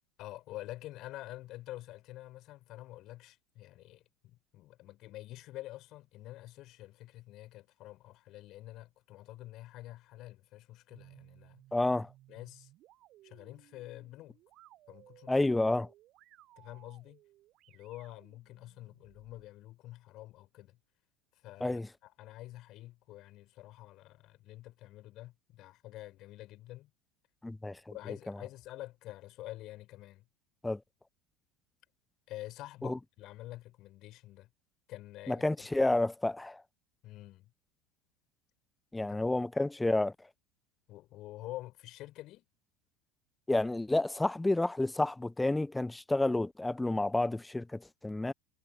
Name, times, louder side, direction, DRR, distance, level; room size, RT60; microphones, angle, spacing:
voice 1, 0.2-11.6 12.3-12.7 13.2-14.4 14.9-15.5 16.6-17.2 17.7-20.8 21.3-26.9 27.9-30.3 32.3-34.5 34.9-35.4 37.0-37.5 39.0-39.2 40.9-42.4, left 16 dB, 45° left, 3.2 m, -47 dB
sound 1, 10.9-19.5, right 15 dB, 40° right, 3.4 m, -61 dB
voice 2, 11.7-12.1 15.3-15.9 21.6-21.9 27.4-27.9 30.6-30.8 32.8-33.0 35.3-36.6 38.9-40.1 43.5-48.3, left 2 dB, 10° left, 0.7 m, -30 dB
figure-of-eight pair, 75°, 0 cm